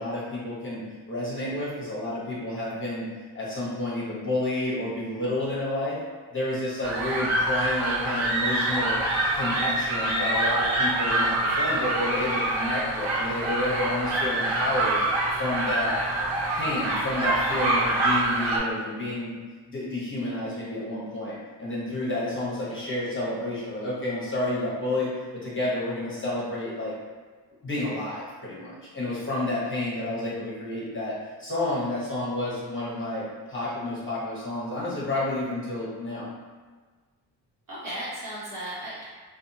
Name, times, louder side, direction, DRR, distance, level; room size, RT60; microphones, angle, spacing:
voice 1, 0.0-3.0 3.3-6.0 6.3-9.0 9.3-15.0 15.4-15.9 16.5-19.3 19.7-26.9 27.6-31.1 31.4-36.3, left 1 dB, 25° left, -7 dB, 1.0 m, -30 dB
sound 1, 6.8-18.6, right 2 dB, 85° right, 0.7 m, -25 dB
voice 2, 37.7-39.0, right 1 dB, 45° right, -9 dB, 1.4 m, -37 dB
2.6 x 2.4 x 2.6 m, 1.4 s
cardioid pair, 75°, 47 cm